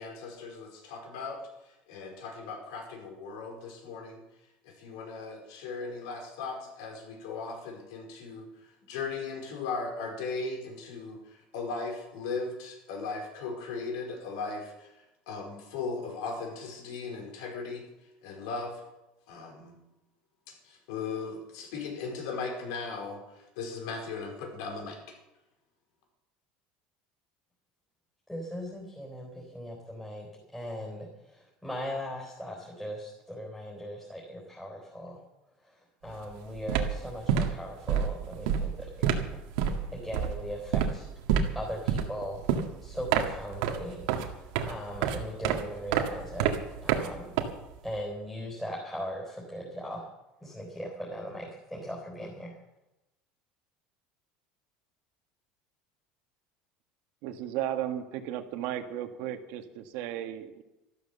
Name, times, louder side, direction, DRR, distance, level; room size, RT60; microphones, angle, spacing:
voice 1, 0.0-1.4 1.9-4.2 4.7-8.5 8.9-11.2 11.5-14.7 15.3-17.8 18.2-18.8 19.3-19.7 20.6-23.2 23.6-25.0, left 4 dB, 85° left, 3 dB, 4.9 m, -37 dB
voice 2, 28.3-35.2 35.6-41.1 41.5-42.4 42.8-47.3 47.8-50.1 50.4-52.6, equal, 5° left, -4 dB, 4.1 m, -39 dB
sound 1, 36.1-36.3 36.6-48.0, right 8 dB, 85° right, 1.9 m, -29 dB
voice 3, 57.2-60.6, right 11 dB, 65° right, 7 dB, 1.7 m, -35 dB
13.0 x 12.5 x 6.9 m, 0.97 s
cardioid pair, 155°, 3 cm